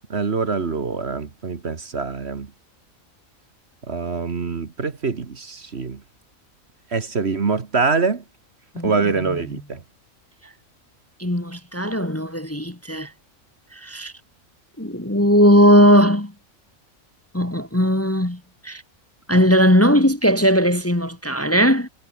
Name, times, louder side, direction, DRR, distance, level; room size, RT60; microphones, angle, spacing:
voice 1, 0.1-2.5 3.9-6.0 6.9-8.2 8.8-9.8, right 4 dB, 50° right, 1.8 m, -24 dB
voice 2, 9.3-9.6 11.2-13.1 13.7-14.1 14.8-16.3 17.3-18.8 19.3-21.9, equal, 10° left, 1.4 m, -18 dB
omnidirectional pair, 1.4 m